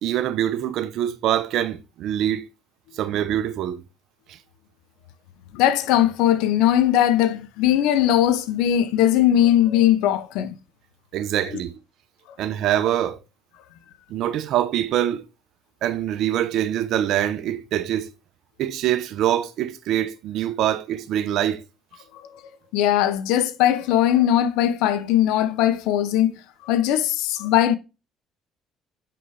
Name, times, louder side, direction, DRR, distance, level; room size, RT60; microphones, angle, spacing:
voice 1, 0.0-2.5 2.9-3.8 4.3-4.4 11.1-11.8 12.4-13.2 14.1-15.3 15.8-18.1 18.6-21.6, right 11 dB, 70° right, 0.6 m, -24 dB
voice 2, 5.5-10.6 11.5-11.6 22.7-26.3 26.6-27.8, left 11 dB, 80° left, 0.6 m, -19 dB
5.7 x 5.2 x 3.2 m
supercardioid pair, 65°, 0 cm